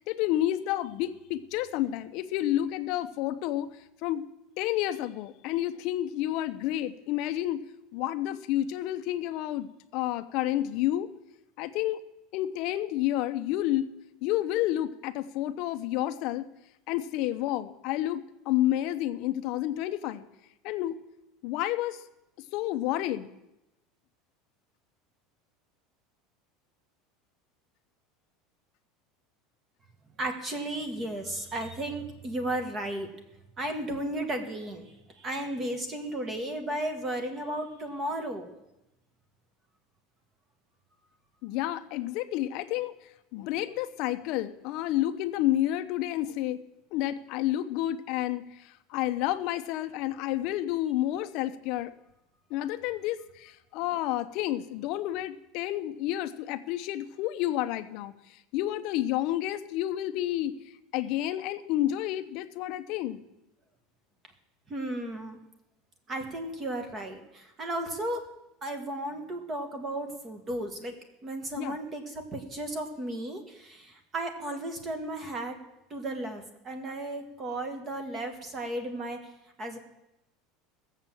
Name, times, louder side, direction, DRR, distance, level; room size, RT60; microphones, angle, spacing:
voice 1, 0.0-3.7 4.0-4.2 4.6-7.6 7.9-11.1 11.6-12.0 12.3-13.9 14.2-16.4 16.9-20.2 20.6-21.0 21.4-22.0 22.5-23.3 41.4-42.9 43.3-46.6 46.9-51.9 52.5-60.6 60.9-63.2 71.6-71.8, left 13 dB, 45° left, 11 dB, 0.6 m, -30 dB
voice 2, 30.2-33.1 33.6-38.5 64.7-65.4 66.1-68.2 68.6-70.9 71.2-75.6 75.9-79.2 79.6-79.8, right 1 dB, 20° right, 6 dB, 1.5 m, -34 dB
16.5 x 7.4 x 7.5 m, 0.92 s
cardioid pair, 175°, 0 cm